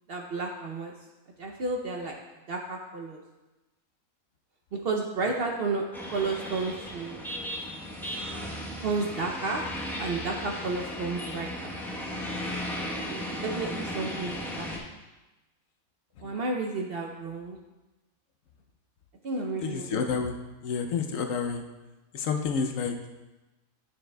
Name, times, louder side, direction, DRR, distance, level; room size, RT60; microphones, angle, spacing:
voice 1, 0.1-0.9 1.4-2.2 2.5-3.2 4.7-5.8 6.1-7.2 8.8-9.6 10.0-11.7 13.1-14.7 16.2-17.6 19.2-20.1, right 3 dB, 60° right, 1 dB, 0.7 m, -32 dB
sound 1, 5.9-14.8, equal, ahead, 0.7 m, -36 dB
voice 2, 19.6-20.3 20.6-21.6 22.1-23.1, left 5 dB, 70° left, 4 dB, 1.0 m, -29 dB
9.6 x 6.5 x 2.2 m, 1.1 s
omnidirectional pair, 1.5 m